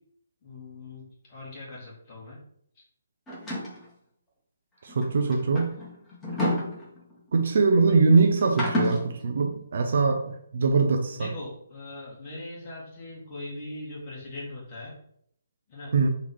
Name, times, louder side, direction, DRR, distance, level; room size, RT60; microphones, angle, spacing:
voice 1, 0.4-2.4 5.0-5.7 11.1-14.9 15.7-15.9, left 2 dB, 30° left, -4 dB, 1.9 m, -41 dB
sound 1, 3.3-3.8 4.9-7.3 8.4-9.1, left 1 dB, 10° left, 1.3 m, -30 dB
voice 2, 4.8-5.7 7.3-11.3 15.9-16.1, right 4 dB, 50° right, 4 dB, 0.5 m, -22 dB
4.0 x 2.8 x 4.3 m, 0.70 s
figure-of-eight pair, 140°, 0 cm